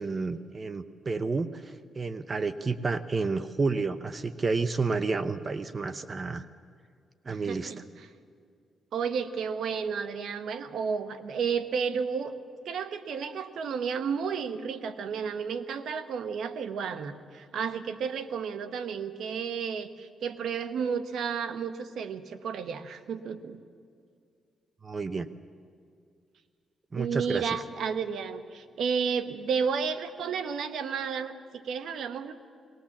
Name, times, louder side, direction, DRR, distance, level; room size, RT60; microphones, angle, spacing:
voice 1, 0.0-6.5 7.3-7.7 24.8-25.3 26.9-27.6, right 4 dB, 35° right, 12 dB, 0.7 m, -30 dB
voice 2, 7.3-8.1 8.9-12.3 12.6-23.6 27.0-32.3, right 6 dB, 75° right, 9 dB, 1.1 m, -32 dB
20.5 x 19.0 x 7.3 m, 2.2 s
cardioid pair, 85°, 0 cm